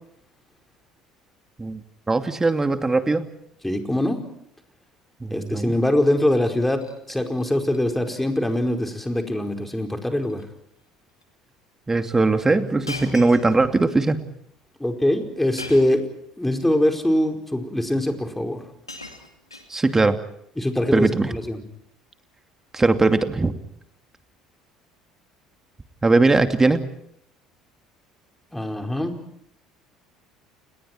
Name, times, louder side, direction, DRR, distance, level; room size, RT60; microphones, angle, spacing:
voice 1, 1.6-3.3 5.2-5.8 11.9-14.2 19.7-20.2 20.9-21.4 22.7-23.5 26.0-26.9, right 3 dB, 15° right, 8 dB, 2.6 m, -20 dB
voice 2, 3.6-4.2 5.3-6.8 7.1-10.4 14.8-16.0 16.4-18.6 20.6-21.6 28.5-29.2, left 1 dB, 5° left, 5 dB, 4.8 m, -23 dB
Shatter, 6.5-7.0 7.3-7.8 8.1-8.4 8.7-8.8 9.6-9.9 10.2-10.5 11.2-11.3 12.9-14.0 15.6-16.1 17.1-17.2 18.2-18.3 18.6-20.1 21.0-21.3, left 2 dB, 90° left, 2.5 m, -40 dB
30.0 x 29.5 x 4.6 m, 0.73 s
figure-of-eight pair, 60°, 2 cm